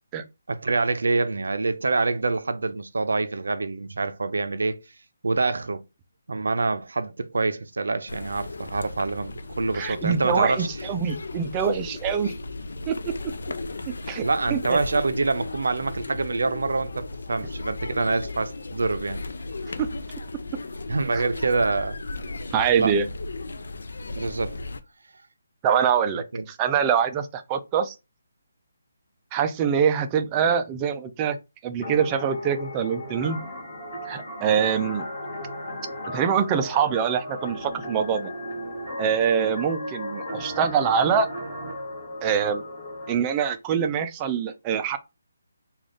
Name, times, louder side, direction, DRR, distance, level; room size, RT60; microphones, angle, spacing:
voice 1, 0.5-4.8 5.2-5.8 6.3-10.7 14.2-19.2 20.9-22.0 22.8-22.9 24.1-24.6 26.1-26.5, right 3 dB, 80° right, 0.5 m, -26 dB
sound 1, 8.1-24.8, left 2 dB, 75° left, 0.5 m, -36 dB
voice 2, 9.7-12.3 12.9-13.3 14.1-14.2 14.5-14.8 21.1-21.2 22.5-23.1 25.6-27.9 29.3-31.4 31.6-33.4 34.1-35.0 36.1-38.3 39.0-41.3 42.2-42.6 43.1-45.0, right 7 dB, 15° right, 0.3 m, -24 dB
sound 2, 31.8-43.1, equal, 25° left, 1.7 m, -35 dB
3.7 x 2.3 x 3.5 m
hypercardioid pair, 170°, 0 cm